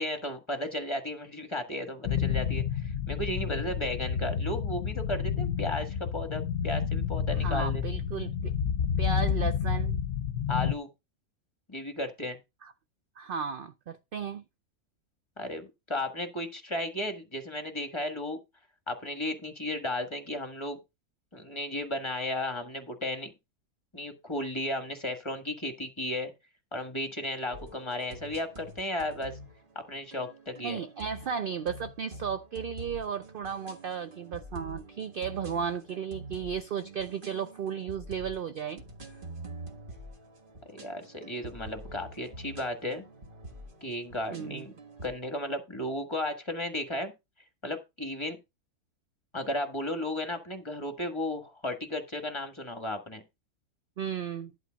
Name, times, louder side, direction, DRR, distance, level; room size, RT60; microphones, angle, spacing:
voice 1, 0.0-7.8 10.5-10.9 11.7-12.4 15.4-18.4 18.9-20.8 21.3-23.3 23.9-26.3 26.7-29.4 29.7-30.8 40.7-43.0 43.8-44.7 45.0-47.1 47.6-48.4 49.3-53.2, left 1 dB, 20° left, 1.4 m, -34 dB
sound 1, 2.0-10.7, left 8 dB, 60° left, 1.0 m, -30 dB
voice 2, 7.4-8.5 9.0-10.0 12.6-12.7 13.2-14.4 30.6-38.8 44.3-44.7 54.0-54.5, right 7 dB, 65° right, 0.5 m, -34 dB
sound 2, 27.5-45.1, right 1 dB, 35° right, 1.7 m, -46 dB
11.0 x 4.0 x 6.2 m
omnidirectional pair, 1.5 m